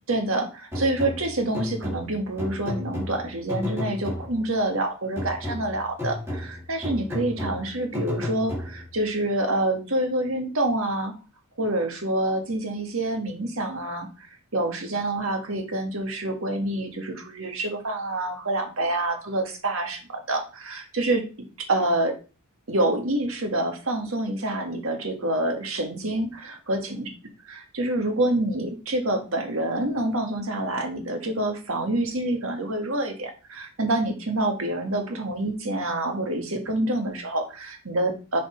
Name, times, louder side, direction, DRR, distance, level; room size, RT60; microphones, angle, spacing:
voice 1, 0.1-11.1 11.6-21.2 21.6-22.1 22.7-27.1 27.5-38.4, right 1 dB, 70° right, 4 dB, 1.7 m, -27 dB
sound 1, 0.7-4.6 5.2-9.0, left 1 dB, 10° right, 2.5 m, -33 dB
7.5 x 4.3 x 4.4 m, 0.34 s
head